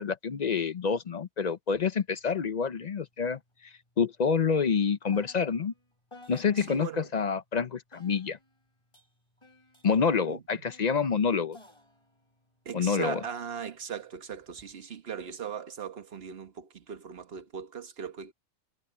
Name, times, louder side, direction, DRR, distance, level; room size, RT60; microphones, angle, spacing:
voice 1, 0.0-5.7 6.3-8.4 9.8-11.6 12.7-13.2, left 6 dB, 45° left, 0.6 m, -28 dB
sound 1, 2.2-7.0 7.9-13.5 14.3-14.7, left 2 dB, 25° left, 3.8 m, -57 dB
voice 2, 6.6-7.1 10.3-10.4 12.6-18.3, right 7 dB, 50° right, 1.4 m, -39 dB
omnidirectional pair, 1.3 m